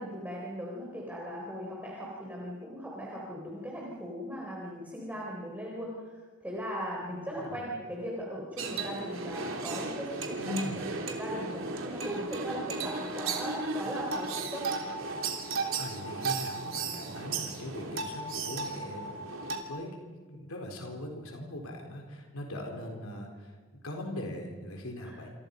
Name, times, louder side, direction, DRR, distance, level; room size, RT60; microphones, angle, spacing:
voice 1, 0.0-10.4 11.0-14.6 25.0-25.2, equal, 10° right, -3 dB, 4.1 m, -38 dB
voice 2, 7.0-7.6 10.4-10.8 15.8-19.3 19.7-19.9 20.3-23.5 23.8-25.3, left 1 dB, 80° left, 2 dB, 4.0 m, -40 dB
sound 1, 8.6-19.6, right 3 dB, 65° right, 3.3 m, -35 dB
28.5 x 27.0 x 5.4 m, 1.5 s
head